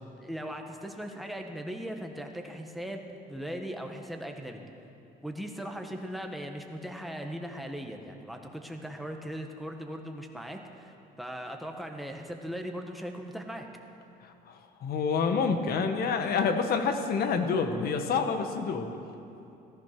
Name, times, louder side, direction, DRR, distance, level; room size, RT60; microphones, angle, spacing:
voice 1, 0.2-4.6 5.2-13.7, equal, ahead, 2 dB, 1.5 m, -39 dB
voice 2, 14.2-19.0, left 5 dB, 65° left, 6 dB, 1.4 m, -28 dB
14.5 x 14.0 x 6.0 m, 2.8 s
cardioid pair, 110°, 17 cm